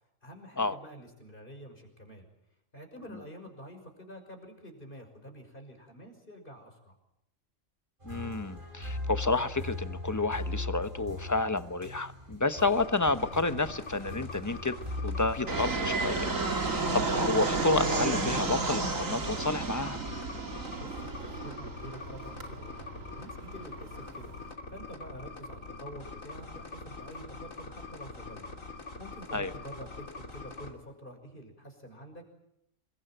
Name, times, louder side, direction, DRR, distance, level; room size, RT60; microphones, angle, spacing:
voice 1, 0.2-2.3 2.7-7.0 20.8-24.3 24.7-32.3, equal, 40° left, 5 dB, 6.2 m, -48 dB
voice 2, 8.0-14.7 15.0-20.0 29.3-29.5, left 3 dB, 15° left, 11 dB, 1.0 m, -30 dB
sound 1, 8.0-15.9, left 2 dB, 40° right, 6.3 m, -39 dB
sound 2, 12.6-30.7, left 3 dB, 85° left, 3.6 m, -44 dB
Fixed-wing aircraft airplane, 15.5-24.5, right 3 dB, 80° right, 3.0 m, -32 dB
27.0 x 22.5 x 9.2 m, 0.81 s
omnidirectional pair, 1.3 m